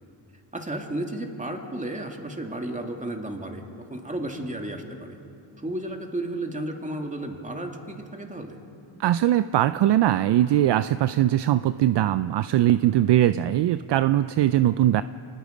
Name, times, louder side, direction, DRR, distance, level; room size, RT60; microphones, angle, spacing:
voice 1, 0.5-3.6 3.9-5.2 5.6-8.6, right 1 dB, 15° right, 3 dB, 2.4 m, -33 dB
voice 2, 9.0-15.0, right 13 dB, 60° right, 14 dB, 0.5 m, -21 dB
26.0 x 19.5 x 5.2 m, 2.6 s
cardioid pair, 85°, 50 cm